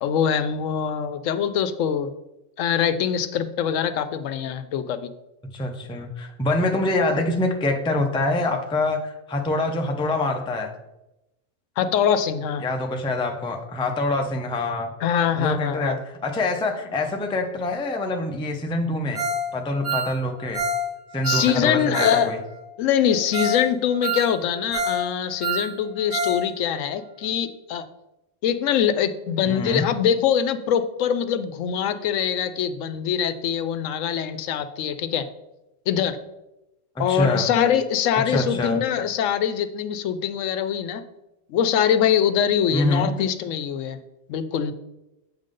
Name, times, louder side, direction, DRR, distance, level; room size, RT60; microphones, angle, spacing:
voice 1, 0.0-2.1 2.6-5.1 11.8-12.6 15.0-16.0 21.2-22.3 22.8-27.8 28.4-35.2 35.9-36.2 37.0-41.0 41.5-44.0 44.3-44.7, left 8 dB, 80° left, 11 dB, 0.9 m, -23 dB
voice 2, 5.4-10.7 12.6-14.9 15.4-19.2 19.5-20.6 21.1-22.4 29.5-29.9 37.0-37.5 38.2-38.8 42.7-43.1, left 2 dB, 10° left, 4 dB, 0.3 m, -25 dB
Ringtone, 19.1-19.4 19.7-22.2 22.5-22.6 23.0-23.1 23.3-23.6 23.9-25.0 25.3-26.4 26.7-26.8 27.2-27.3, right 1 dB, 70° right, 3.2 m, -27 dB
7.6 x 5.1 x 3.7 m, 0.93 s
omnidirectional pair, 1.3 m